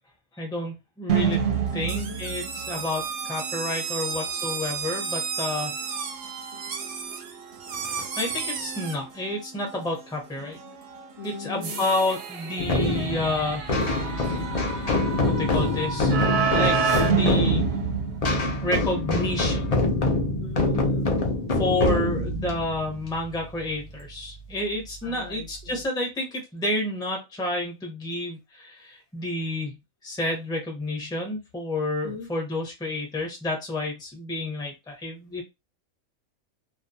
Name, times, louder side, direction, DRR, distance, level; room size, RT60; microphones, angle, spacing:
voice 1, 0.4-1.4 1.7-5.8 8.2-10.6 11.2-13.7 15.3-16.2 16.5-17.6 18.6-19.7 21.5-29.7 30.0-35.4, left 1 dB, 5° left, 0.5 m, -30 dB
sound 1, 1.1-18.8, right 6 dB, 60° right, 0.7 m, -31 dB
voice 2, 1.9-2.2 7.6-8.1 11.2-11.8 20.4-21.1 25.0-25.8 32.0-32.3, left 6 dB, 65° left, 0.8 m, -39 dB
sound 2, 1.9-9.0, right 6 dB, 90° right, 1.0 m, -33 dB
sound 3, 12.6-24.0, left 2 dB, 80° left, 0.3 m, -25 dB
2.4 x 2.3 x 2.6 m
omnidirectional pair, 1.4 m